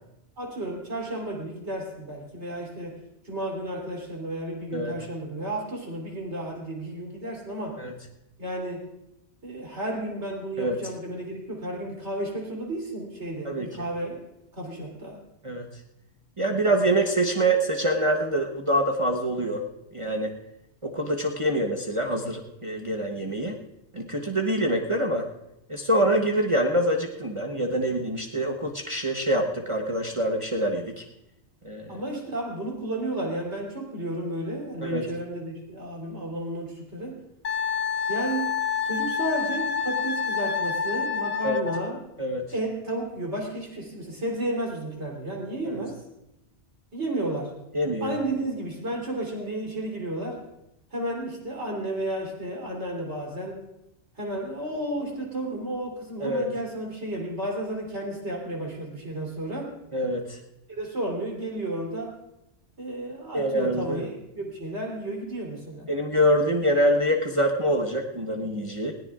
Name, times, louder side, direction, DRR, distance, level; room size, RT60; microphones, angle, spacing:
voice 1, 0.4-3.0 3.2-7.8 8.4-8.8 9.4-14.2 14.5-15.2 31.9-37.2 38.1-38.6 38.8-42.0 42.5-46.0 46.9-47.5 48.0-50.4 50.9-53.7 54.2-59.7 60.7-62.2 62.8-65.9, right 1 dB, 75° right, -1 dB, 3.8 m, -32 dB
voice 2, 16.4-19.6 19.9-20.4 20.8-23.6 23.9-25.3 25.7-31.0 31.6-32.0 34.8-35.0 41.4-41.6 42.2-42.5 45.7-45.8 47.7-48.2 56.2-56.5 59.9-60.4 63.3-64.0 65.9-68.9, right 1 dB, 30° right, 0 dB, 1.0 m, -25 dB
Wind instrument woodwind instrument, 37.4-41.9, left 6 dB, 60° left, 0.9 m, -28 dB
21.0 x 17.0 x 2.4 m, 0.87 s
omnidirectional pair, 1.2 m